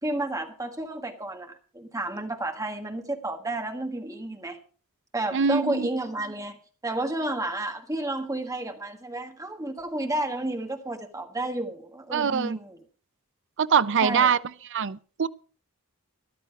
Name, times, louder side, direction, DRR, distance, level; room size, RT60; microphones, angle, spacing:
voice 1, 0.0-4.6 5.1-6.6 6.8-12.8 14.0-14.3, right 2 dB, 15° right, 1.5 m, -31 dB
voice 2, 5.3-5.9 12.1-12.6 13.6-14.4 14.7-15.3, right 6 dB, 55° right, 0.6 m, -23 dB
14.0 x 11.5 x 4.7 m
head